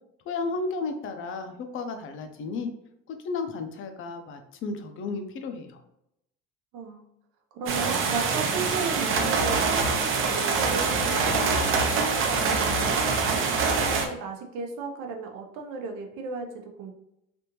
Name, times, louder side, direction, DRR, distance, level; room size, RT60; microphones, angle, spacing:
voice 1, 0.3-2.7 3.1-5.8, left 4 dB, 45° left, 6 dB, 0.6 m, -33 dB
voice 2, 6.7-7.0 7.5-13.2 13.7-16.9, right 4 dB, 80° right, 3 dB, 0.7 m, -35 dB
sound 1, 7.7-14.1, right 4 dB, 45° right, 0.6 m, -25 dB
3.4 x 2.5 x 2.9 m, 0.80 s
cardioid pair, 135°, 30 cm